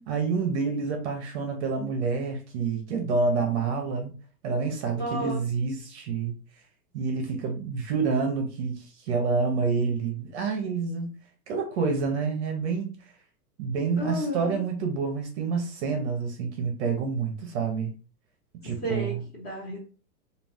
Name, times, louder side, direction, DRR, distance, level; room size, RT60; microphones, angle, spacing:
voice 1, 0.1-4.1 4.4-6.4 6.9-11.2 11.5-13.0 13.6-17.9 18.6-19.2, right 4 dB, 45° right, 0.7 m, -28 dB
voice 2, 5.0-5.4 14.0-14.6 18.6-19.8, right 1 dB, 20° left, 1.1 m, -32 dB
2.4 x 2.3 x 3.4 m
hypercardioid pair, 140°, 48 cm